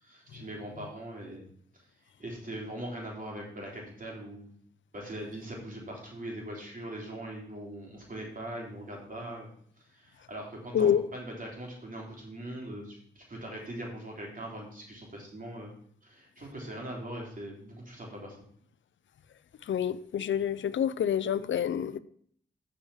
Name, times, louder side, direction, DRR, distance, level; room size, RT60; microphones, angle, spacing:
voice 1, 0.0-1.4 2.2-4.6 4.9-9.5 9.8-15.7 16.0-18.4, right 1 dB, 45° right, -2 dB, 3.7 m, -41 dB
voice 2, 19.7-22.0, left 9 dB, 80° left, 16 dB, 0.5 m, -27 dB
7.2 x 5.1 x 7.1 m, 0.62 s
cardioid pair, 50°, 19 cm